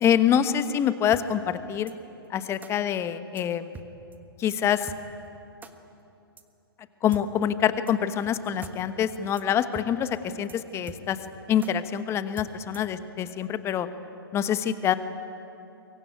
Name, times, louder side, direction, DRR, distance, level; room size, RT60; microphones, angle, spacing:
voice 1, 0.0-1.9 2.3-3.7 4.4-4.9 7.0-11.2 11.5-13.9 14.3-14.9, left 9 dB, 20° left, 12 dB, 1.1 m, -25 dB
sound 1, 1.1-1.2 1.9-2.0 2.6-2.7 3.4-3.5 3.7-3.9 4.1-4.2 4.5-4.6 4.9-5.0 5.6-5.7 6.4-6.5 7.1-7.2 7.9-8.0 8.2-8.3 8.6-8.7 9.0-9.1 9.4-9.5 9.7-9.9 10.1-10.2 10.5-10.6 10.9-11.3 11.6-11.7 12.4-12.9, right 6 dB, 15° right, 1.5 m, -43 dB
24.0 x 22.5 x 9.1 m, 2.9 s
figure-of-eight pair, 115°, 13 cm